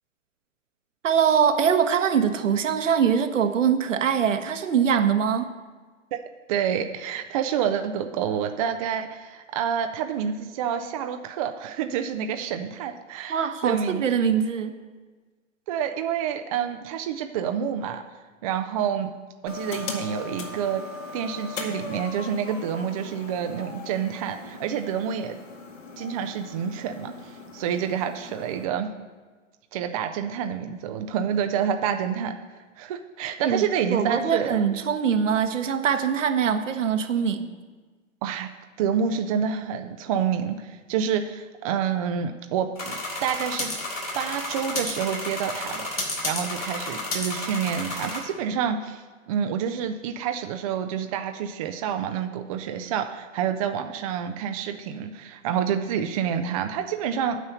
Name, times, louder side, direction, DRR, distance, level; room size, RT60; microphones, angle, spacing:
voice 1, 1.0-5.5 13.3-14.7 33.4-33.6 33.9-37.5, right 7 dB, 70° right, 7 dB, 1.2 m, -23 dB
voice 2, 6.5-14.0 15.7-18.0 18.4-19.1 19.4-20.8 21.1-25.3 26.0-28.9 29.7-32.3 32.8-34.7 38.2-38.5 38.8-43.7 44.1-57.4, right 8 dB, 30° right, 6 dB, 0.5 m, -28 dB
sound 1, 19.5-28.6, left 3 dB, 70° left, 2.1 m, -39 dB
sound 2, 42.8-48.2, left 2 dB, 90° left, 3.8 m, -31 dB
9.1 x 5.5 x 8.0 m, 1.4 s
hypercardioid pair, 125°, 39 cm